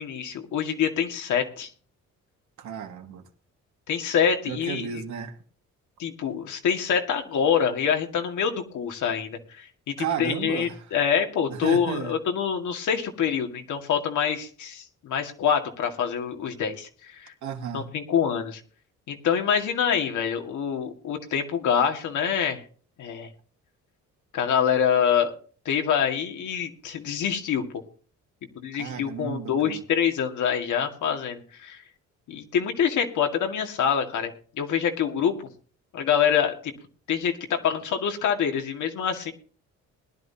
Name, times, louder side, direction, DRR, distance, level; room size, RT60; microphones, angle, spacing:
voice 1, 0.0-1.7 3.9-5.0 6.0-17.3 17.7-18.6 19.1-22.6 23.0-23.3 24.3-25.3 25.7-27.6 28.6-31.8 32.3-35.3 35.9-36.7 37.1-39.3, left 8 dB, 75° left, 2.2 m, -26 dB
voice 2, 2.6-3.2 4.5-5.3 10.0-10.8 11.5-12.2 17.4-17.9 28.7-29.8, right 7 dB, 70° right, 2.1 m, -33 dB
20.5 x 11.0 x 2.9 m
cardioid pair, 90°, 30 cm